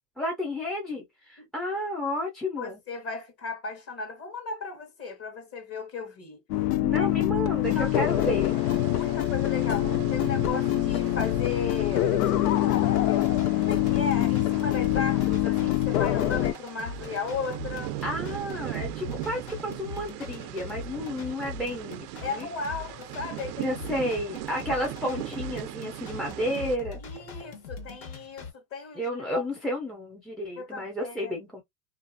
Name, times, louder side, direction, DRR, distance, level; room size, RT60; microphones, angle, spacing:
voice 1, 0.2-2.8 6.8-8.5 18.0-22.5 23.6-27.0 28.9-31.6, left 1 dB, ahead, 0.4 m, -32 dB
voice 2, 2.6-6.4 6.9-7.5 7.8-7.9 8.2-8.3 8.7-12.1 12.7-13.3 13.6-18.0 22.2-23.7 27.0-29.0 29.3-29.4 30.6-31.3, left 4 dB, 30° left, 1.1 m, -35 dB
sound 1, 6.5-16.5, left 13 dB, 85° left, 0.5 m, -25 dB
sound 2, 7.6-26.8, right 13 dB, 85° right, 0.5 m, -40 dB
sound 3, 12.9-28.5, left 4 dB, 70° left, 1.4 m, -42 dB
2.5 x 2.4 x 2.5 m
supercardioid pair, 115°, 47 cm